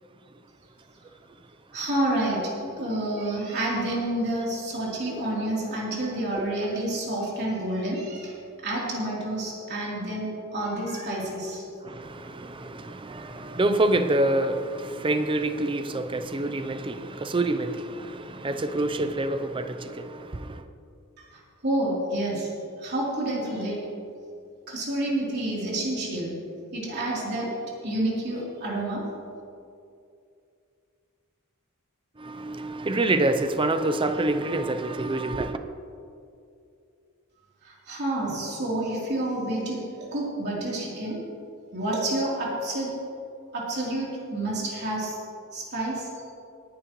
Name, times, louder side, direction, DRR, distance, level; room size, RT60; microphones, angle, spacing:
voice 1, 1.7-11.6 21.2-22.5 22.8-23.8 24.7-26.3 26.7-27.5 27.8-29.1 37.6-39.8 40.1-41.2 41.7-42.9 43.5-45.2 45.5-46.1, right 1 dB, 50° right, -5 dB, 3.4 m, -29 dB
voice 2, 11.8-20.6 32.2-35.6, right 2 dB, 25° right, 9 dB, 0.5 m, -27 dB
18.5 x 10.5 x 3.1 m, 2.5 s
head